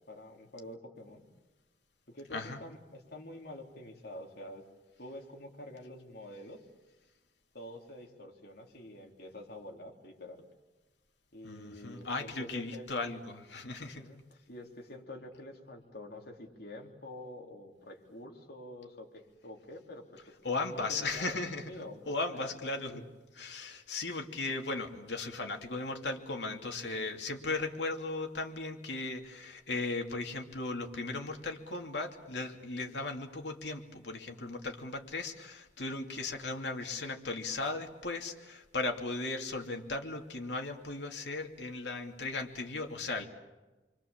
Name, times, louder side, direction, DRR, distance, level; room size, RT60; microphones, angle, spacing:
voice 1, 0.1-1.3 2.1-4.6 5.0-6.6 7.5-10.4 11.3-12.9 13.8-20.2 20.5-21.4 21.7-23.0, left 1 dB, 60° left, 1 dB, 3.7 m, -47 dB
voice 2, 2.3-2.6 11.4-14.1 20.4-21.7 22.1-23.0 23.4-43.2, left 3 dB, 80° left, 3 dB, 2.8 m, -37 dB
29.0 x 24.0 x 7.4 m, 1.2 s
head